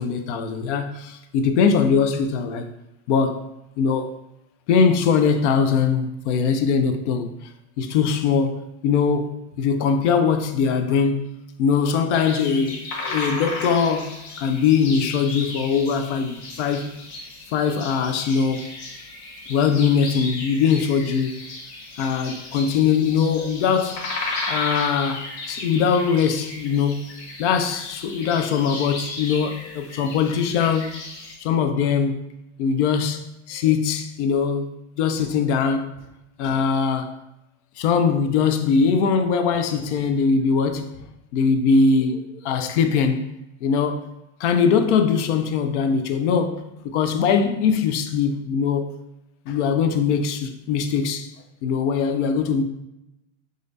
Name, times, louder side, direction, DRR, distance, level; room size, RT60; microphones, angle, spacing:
voice 1, 0.0-2.7 3.1-3.4 3.8-4.1 4.7-7.3 7.8-11.3 11.6-17.0 17.5-18.7 19.5-21.4 22.0-24.0 24.5-27.1 27.4-31.0 31.4-32.2 32.6-35.9 36.4-37.2 37.8-40.9 41.3-43.3 43.6-44.1 44.4-48.9 49.5-51.3 51.6-52.6, left 6 dB, 70° left, 0.5 m, -21 dB
sound 1, 12.1-31.3, left 2 dB, 50° left, 0.8 m, -35 dB
3.1 x 2.5 x 2.6 m
hypercardioid pair, 110°, 36 cm